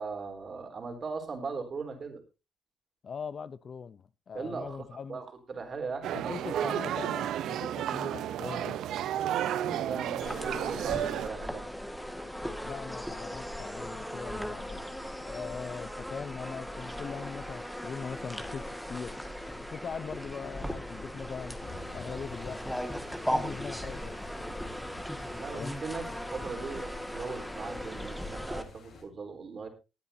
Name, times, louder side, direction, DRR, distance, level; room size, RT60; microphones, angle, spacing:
voice 1, 0.0-2.2 4.3-6.9 9.5-11.6 25.4-29.7, right 4 dB, 45° right, 3.9 m, -39 dB
voice 2, 3.0-5.2 6.1-8.8 12.6-14.8 15.2-19.2 19.7-21.6 21.9-22.6 23.3-24.2 24.4-24.8 25.5-25.7, left 6 dB, 50° left, 0.7 m, -41 dB
sound 1, 6.0-11.3, right 11 dB, 80° right, 0.7 m, -32 dB
Bees around flowers, 10.2-28.6, equal, 5° left, 1.9 m, -38 dB
sound 2, 21.6-29.0, left 4 dB, 70° left, 7.1 m, -51 dB
19.5 x 9.9 x 2.8 m
cardioid pair, 90°, 0 cm